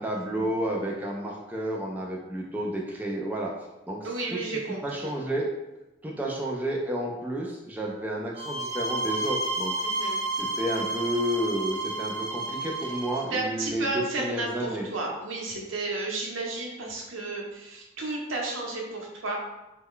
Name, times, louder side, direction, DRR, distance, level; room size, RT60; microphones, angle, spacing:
voice 1, 0.0-3.5 3.9-4.4 4.8-5.5 6.0-9.7 10.3-14.9, right 1 dB, 10° right, -2 dB, 0.3 m, -31 dB
voice 2, 4.0-5.2 9.8-10.2 13.3-19.4, right 2 dB, 85° right, -1 dB, 0.7 m, -32 dB
sound 1, 8.4-13.3, right 2 dB, 40° right, 1.0 m, -31 dB
3.1 x 2.2 x 3.6 m, 1.0 s
head